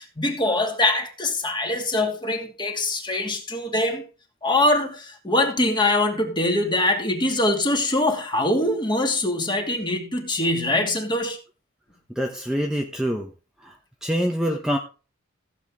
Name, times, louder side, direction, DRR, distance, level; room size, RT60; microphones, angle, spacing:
voice 1, 0.0-4.0 4.4-11.4, left 2 dB, 20° left, 2.7 m, -23 dB
voice 2, 12.1-13.3 13.6-14.8, equal, 5° right, 1.1 m, -26 dB
15.5 x 8.2 x 3.7 m
head